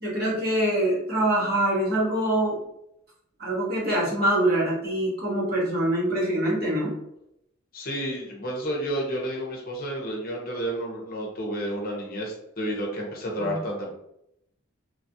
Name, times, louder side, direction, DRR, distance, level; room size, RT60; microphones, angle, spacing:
voice 1, 0.0-2.6 3.4-7.0 13.4-13.5, right 1 dB, 50° right, -5 dB, 1.2 m, -24 dB
voice 2, 7.7-13.9, right 1 dB, 45° left, -1 dB, 0.7 m, -31 dB
3.1 x 2.3 x 2.7 m, 0.78 s
head